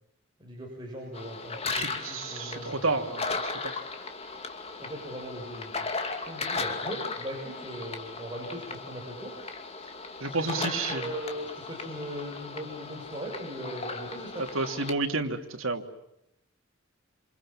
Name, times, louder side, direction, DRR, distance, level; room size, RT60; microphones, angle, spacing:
voice 1, 0.4-3.1 4.8-5.8 6.3-9.4 10.3-14.5, equal, 25° right, -1 dB, 7.3 m, -39 dB
sound 1, 1.1-14.9, left 4 dB, 30° left, 2.7 m, -36 dB
voice 2, 1.7-3.7 10.2-11.0 14.4-15.8, right 3 dB, 85° right, 5 dB, 2.9 m, -31 dB
28.5 x 28.0 x 7.4 m, 0.81 s
head